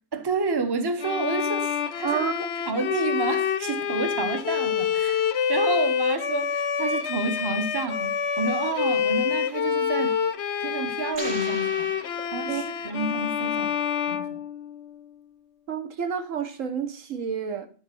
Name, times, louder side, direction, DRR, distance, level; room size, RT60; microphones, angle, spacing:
voice 1, 0.1-2.2 2.7-5.2 5.5-10.2 10.6-11.9 12.3-13.8 14.1-14.4, right 4 dB, 20° right, 0.8 m, -29 dB
Bowed string instrument, 1.0-15.1, left 7 dB, 60° left, 0.9 m, -27 dB
voice 2, 2.0-2.5 12.5-12.6 15.7-17.7, right 7 dB, 65° right, 1.3 m, -29 dB
sound 1, 11.1-13.0, right 3 dB, 35° right, 1.5 m, -40 dB
11.5 x 4.4 x 6.0 m
omnidirectional pair, 1.5 m